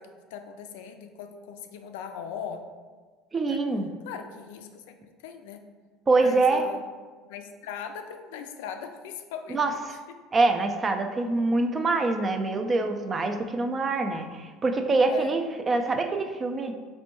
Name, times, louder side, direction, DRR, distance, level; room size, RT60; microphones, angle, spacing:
voice 1, 0.0-2.6 3.5-3.6 4.0-5.7 6.2-6.8 7.3-9.8 15.1-15.3, left 7 dB, 85° left, 6 dB, 0.3 m, -39 dB
voice 2, 3.3-3.9 6.1-6.6 9.5-9.7 10.3-16.7, right 3 dB, 25° right, 6 dB, 0.3 m, -25 dB
4.2 x 2.2 x 2.9 m, 1.4 s
supercardioid pair, 100°, 0 cm